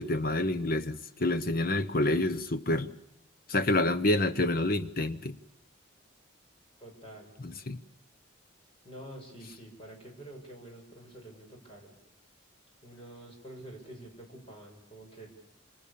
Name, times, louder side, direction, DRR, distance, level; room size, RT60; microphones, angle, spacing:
voice 1, 0.0-2.9 3.5-5.4 7.4-7.8, left 2 dB, 45° left, 13 dB, 1.0 m, -28 dB
voice 2, 6.8-7.3 8.8-11.9 12.8-15.3, right 1 dB, 25° left, 1 dB, 6.7 m, -48 dB
28.0 x 27.0 x 7.0 m, 0.74 s
head